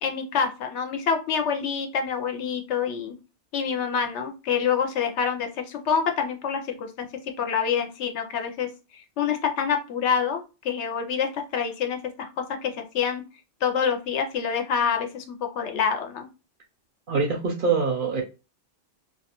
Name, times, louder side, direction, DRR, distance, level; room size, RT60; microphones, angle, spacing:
voice 1, 0.0-3.1 3.5-7.1 7.4-8.7 8.9-12.3 12.6-13.2 13.6-16.3, left 7 dB, 75° left, 5 dB, 0.8 m, -27 dB
voice 2, 17.1-18.2, right 4 dB, 60° right, 2 dB, 0.6 m, -24 dB
2.4 x 2.2 x 2.8 m, 0.30 s
omnidirectional pair, 1.2 m